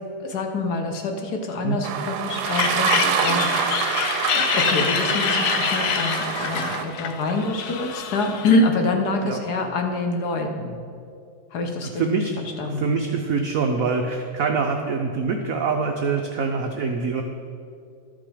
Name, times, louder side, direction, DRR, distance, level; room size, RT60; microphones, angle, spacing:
voice 1, 0.2-3.8 4.3-10.8 11.5-12.0 12.4-13.0, left 2 dB, 60° left, 4 dB, 1.2 m, -26 dB
sound 1, 1.8-6.8, right 7 dB, 65° right, 1.0 m, -26 dB
sound 2, 2.4-8.5, left 7 dB, 85° left, 1.6 m, -26 dB
voice 2, 11.9-12.3 12.6-17.2, right 4 dB, 85° right, 3 dB, 0.7 m, -24 dB
12.5 x 6.0 x 4.9 m, 2.4 s
omnidirectional pair, 2.2 m